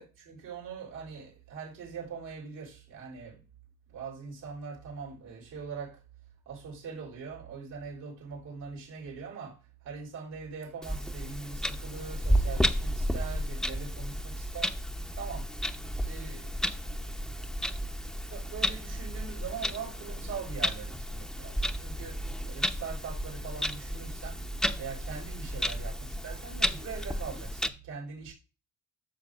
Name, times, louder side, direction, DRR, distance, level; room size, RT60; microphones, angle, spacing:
voice 1, 0.0-3.4 3.9-6.0 6.5-14.7 15.1-15.5 16.0-16.6 18.3-24.5 24.8-28.3, right 6 dB, 85° right, 3.8 m, -42 dB
Clock, 10.8-27.7, equal, ahead, 0.7 m, -32 dB
11.5 x 6.7 x 2.5 m
cardioid pair, 90°, 30 cm